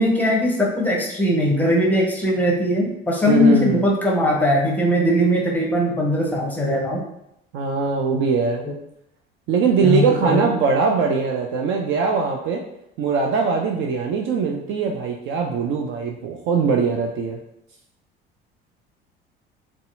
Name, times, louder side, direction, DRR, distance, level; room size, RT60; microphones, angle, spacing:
voice 1, 0.0-7.0 8.1-8.2 8.6-8.7 9.8-10.5, left 1 dB, 5° left, -2 dB, 0.9 m, -20 dB
voice 2, 3.3-3.8 7.5-8.6 9.5-12.6 13.0-17.4, right 5 dB, 40° right, 1 dB, 0.4 m, -21 dB
3.9 x 2.3 x 2.6 m, 0.81 s
figure-of-eight pair, 60°, 31 cm